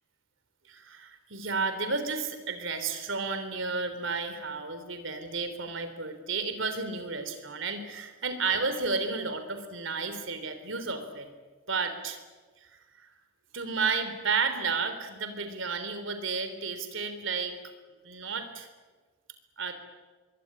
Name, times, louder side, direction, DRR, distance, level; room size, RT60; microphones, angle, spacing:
voice 1, 0.7-11.3 11.7-12.2 12.6-12.7 13.0-13.1 13.5-17.6 18.0-18.7 19.6-19.7, right 4 dB, 70° right, 9 dB, 3.6 m, -32 dB
25.0 x 23.0 x 9.8 m, 1.3 s
head